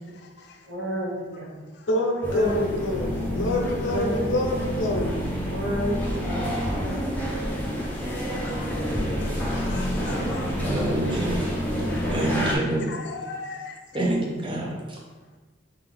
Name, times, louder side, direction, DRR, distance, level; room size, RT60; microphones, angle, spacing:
voice 1, 0.1-0.7 1.7-1.9 3.5-3.9 6.9-7.2 7.9-8.0 8.4-10.6 11.6-12.0 12.8-13.8, left 4 dB, 60° left, 5 dB, 0.5 m, -42 dB
voice 2, 0.7-1.6 2.3-2.6 2.9-3.0 3.8-4.3 5.4-6.5 6.8-7.0 7.3-7.4 8.2-8.4 9.6-9.8, equal, 65° right, -4 dB, 1.2 m, -31 dB
voice 3, 1.9-5.2, left 1 dB, 90° left, 1 dB, 0.8 m, -26 dB
sound 1, 2.2-12.5, equal, 10° left, 0.6 m, -28 dB
voice 4, 10.6-11.4 12.1-13.0 13.9-15.0, right 1 dB, 25° right, -2 dB, 0.7 m, -27 dB
3.5 x 3.5 x 3.5 m, 1.3 s
head